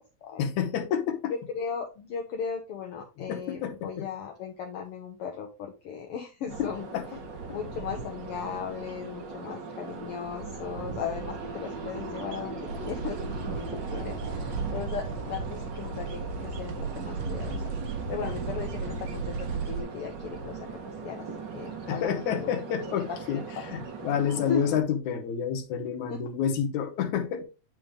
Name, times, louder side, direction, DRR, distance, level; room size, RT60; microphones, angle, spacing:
voice 1, 0.4-1.3 3.2-4.1 6.6-7.0 21.9-27.4, left 8 dB, 85° left, 2.4 m, -29 dB
voice 2, 1.3-6.9 7.5-17.6 18.1-20.6 21.0-21.2 21.5-22.5 23.3-23.7 24.5-24.7 26.1-26.2, left 7 dB, 70° left, 1.5 m, -37 dB
sound 1, 6.5-24.8, right 4 dB, 50° right, 1.5 m, -39 dB
sound 2, 12.7-19.8, right 4 dB, 70° right, 1.9 m, -35 dB
9.4 x 3.5 x 3.6 m
omnidirectional pair, 3.3 m